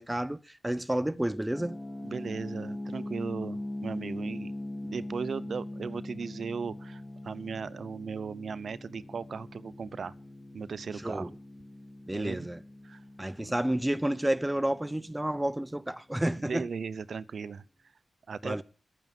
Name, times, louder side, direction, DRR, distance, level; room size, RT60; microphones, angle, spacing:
voice 1, 0.0-1.8 11.0-11.3 12.1-12.6 13.2-16.7 18.4-18.6, right 1 dB, 10° right, 0.9 m, -30 dB
sound 1, 1.5-16.3, left 1 dB, 25° left, 2.5 m, -42 dB
voice 2, 2.0-4.5 4.8-10.1 10.5-11.3 12.1-12.5 12.8-13.0 13.4-13.5 16.4-17.6 18.3-18.6, right 5 dB, 75° right, 0.7 m, -37 dB
12.0 x 9.2 x 9.1 m
cardioid pair, 75°, 0 cm